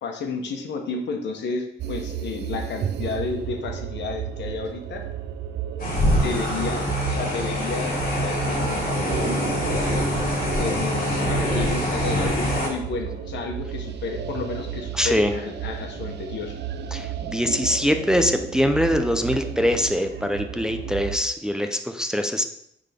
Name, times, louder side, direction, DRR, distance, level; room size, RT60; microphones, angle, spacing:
voice 1, 0.0-5.0 6.0-8.9 10.6-16.6, left 4 dB, 90° left, 3 dB, 1.1 m, -31 dB
sound 1, 1.8-21.2, right 8 dB, 75° right, 0.5 m, -33 dB
sound 2, 5.8-12.7, left 1 dB, 50° left, 2.8 m, -24 dB
voice 2, 15.0-15.3 16.9-22.4, equal, 5° right, 6 dB, 0.4 m, -23 dB
9.4 x 3.7 x 3.5 m, 0.73 s
wide cardioid pair, 145°, 18 cm